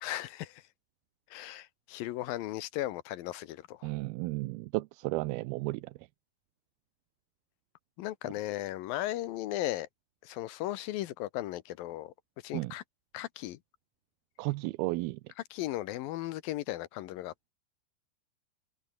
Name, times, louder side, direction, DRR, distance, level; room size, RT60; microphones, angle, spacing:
voice 1, 0.0-0.6 1.3-3.9 8.0-9.9 10.2-12.1 12.4-12.8 13.1-13.6 15.5-17.5, left 15 dB, 75° left, 2.5 m, -36 dB
voice 2, 3.8-5.9 12.5-12.7 14.4-15.2, right 21 dB, 85° right, 2.5 m, -33 dB
open air
omnidirectional pair, 4.5 m